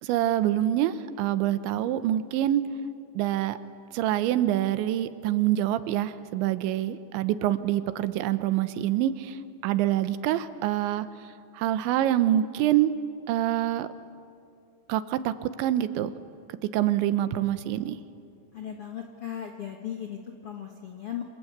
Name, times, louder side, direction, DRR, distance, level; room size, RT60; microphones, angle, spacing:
voice 1, 0.0-2.6 3.1-3.6 3.9-9.4 9.6-11.1 11.5-12.9 13.3-13.9 14.9-16.1 16.7-18.0, right 12 dB, 85° right, 12 dB, 3.3 m, -26 dB
voice 2, 18.5-21.2, left 9 dB, 70° left, 2 dB, 1.4 m, -37 dB
28.0 x 26.0 x 8.2 m, 2.5 s
omnidirectional pair, 5.2 m